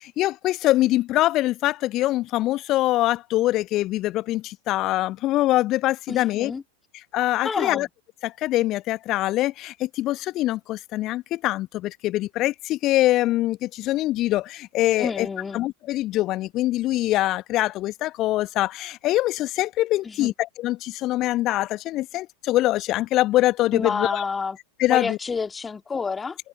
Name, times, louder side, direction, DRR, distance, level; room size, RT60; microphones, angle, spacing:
voice 1, 0.0-6.5 7.1-7.9 8.2-15.3 15.5-20.3 20.6-24.2 24.8-25.2, left 16 dB, 35° left, 1.6 m, -23 dB
voice 2, 6.1-6.6 7.4-7.9 15.0-15.6 20.0-20.3 23.7-24.6 24.9-26.4, left 5 dB, 15° left, 3.0 m, -29 dB
figure-of-eight pair, 90°, 0 cm